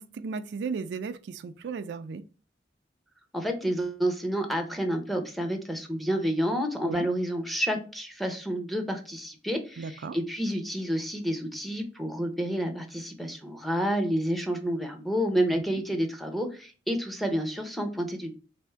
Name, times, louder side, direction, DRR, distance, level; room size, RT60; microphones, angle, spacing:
voice 1, 0.0-2.2 6.8-7.1 9.8-10.2 15.5-15.6, right 5 dB, 70° right, 0.3 m, -35 dB
voice 2, 3.3-18.3, equal, ahead, 0.6 m, -29 dB
3.4 x 2.6 x 4.4 m
head